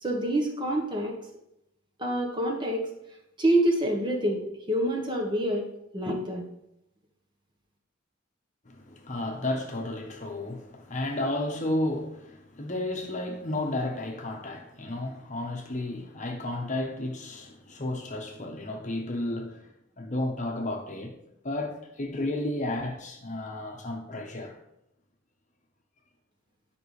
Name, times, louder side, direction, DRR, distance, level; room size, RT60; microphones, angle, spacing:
voice 1, 0.0-1.2 2.0-2.9 3.4-4.4 4.7-5.7 5.9-6.4, right 1 dB, 25° right, 1.2 m, -26 dB
voice 2, 8.6-19.7 20.0-21.2 21.4-24.6, left 1 dB, 40° left, 1.0 m, -32 dB
9.5 x 5.3 x 3.3 m
head